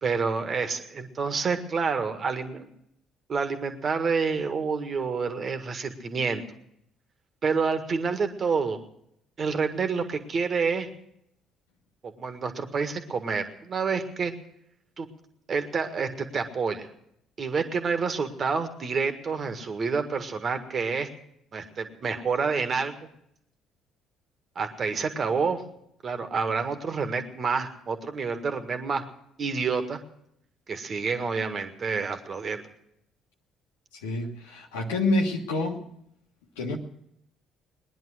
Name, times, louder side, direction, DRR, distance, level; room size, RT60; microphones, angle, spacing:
voice 1, 0.0-2.7 3.3-6.4 7.4-8.8 9.4-10.9 12.0-14.3 15.0-15.1 15.5-16.9 17.4-21.1 21.5-22.9 24.6-25.6 26.0-29.0 29.4-30.0 30.7-32.6, right 5 dB, 45° right, 8 dB, 1.7 m, -28 dB
voice 2, 33.9-35.8 36.6-36.8, left 2 dB, 80° left, 1 dB, 1.4 m, -27 dB
20.0 x 10.5 x 6.3 m, 0.75 s
hypercardioid pair, 50°, 0 cm